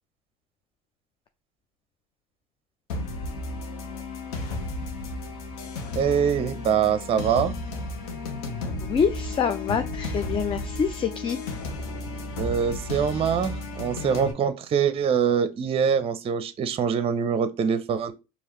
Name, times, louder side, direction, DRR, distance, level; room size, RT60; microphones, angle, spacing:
sound 1, 2.9-14.3, left 2 dB, 80° left, 1.1 m, -33 dB
voice 1, 6.0-7.5 12.4-18.1, right 7 dB, 30° right, 0.6 m, -24 dB
voice 2, 8.6-11.4, left 6 dB, 30° left, 0.5 m, -26 dB
4.7 x 2.8 x 3.0 m
supercardioid pair, 95°, 18 cm